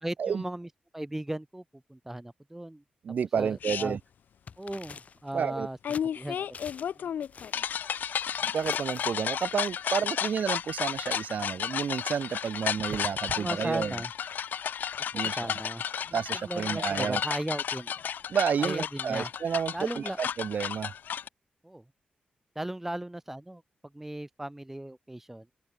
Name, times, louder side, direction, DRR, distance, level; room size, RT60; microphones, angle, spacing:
voice 1, 0.0-1.6 1.9-2.8 3.4-4.0 4.6-5.8 6.2-6.5 7.0-7.1 13.3-14.1 15.0-15.8 16.1-17.9 18.6-19.3 19.7-20.2 21.6-21.8 22.6-23.6 23.9-25.5, right 1 dB, 10° right, 2.2 m, -36 dB
voice 2, 3.0-4.0 5.3-5.7 8.4-13.9 15.1-15.5 16.1-17.2 18.3-20.9, right 7 dB, 65° right, 1.7 m, -30 dB
sound 1, 3.6-3.8 5.8-21.3, left 8 dB, 80° left, 0.9 m, -33 dB
sound 2, 4.5-5.3 5.9-6.1 6.5-7.0 7.2-7.7 8.4-9.7, left 6 dB, 50° left, 7.2 m, -46 dB
wide cardioid pair, 120°, 3 cm